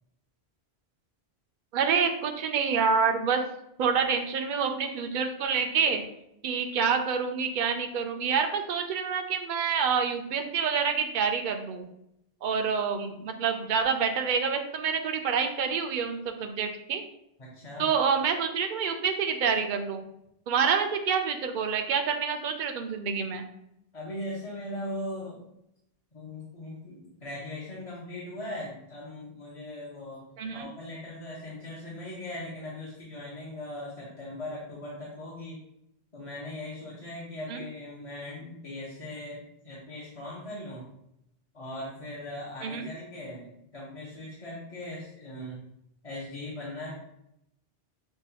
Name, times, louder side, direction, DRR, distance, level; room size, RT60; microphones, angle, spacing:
voice 1, 1.7-3.4 3.8-6.0 6.4-11.9 12.4-17.0 17.8-20.0 20.5-23.5 30.4-30.7 37.5-37.6 42.6-42.9, right 6 dB, 60° right, 5 dB, 0.6 m, -27 dB
voice 2, 17.4-17.9 23.9-25.5 26.1-30.2 30.5-35.6 36.1-40.9 41.5-45.6 46.0-46.9, left 1 dB, 40° left, -7 dB, 0.8 m, -39 dB
5.7 x 2.3 x 2.8 m, 0.81 s
omnidirectional pair, 1.1 m